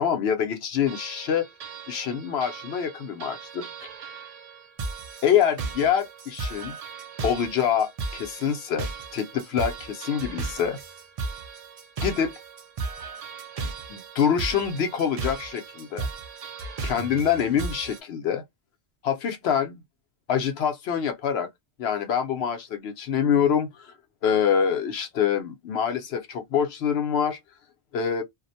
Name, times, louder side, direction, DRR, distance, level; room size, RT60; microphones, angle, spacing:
voice 1, 0.0-1.5 1.9-3.7 5.2-6.8 7.2-8.9 9.1-10.8 12.0-12.3 13.9-16.1 16.8-18.4 19.0-19.8 20.3-21.5 21.8-23.9 24.2-27.4 27.9-28.2, left 8 dB, 70° left, 0.8 m, -25 dB
sound 1, 0.9-18.0, right 4 dB, 60° right, 0.4 m, -36 dB
2.4 x 2.0 x 2.6 m
omnidirectional pair, 1.2 m